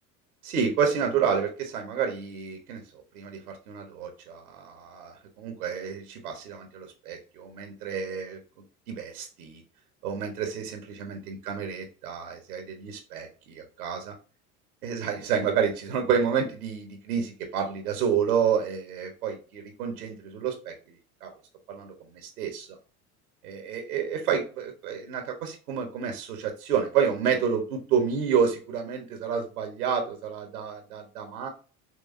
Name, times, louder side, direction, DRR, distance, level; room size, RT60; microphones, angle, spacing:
voice 1, 0.4-2.8 3.1-8.4 8.9-9.6 10.0-14.1 14.8-20.7 21.2-21.3 21.7-22.8 23.4-31.5, right 7 dB, 75° right, 4 dB, 1.3 m, -29 dB
6.2 x 2.8 x 2.7 m, 0.37 s
hypercardioid pair, 75°, 45 cm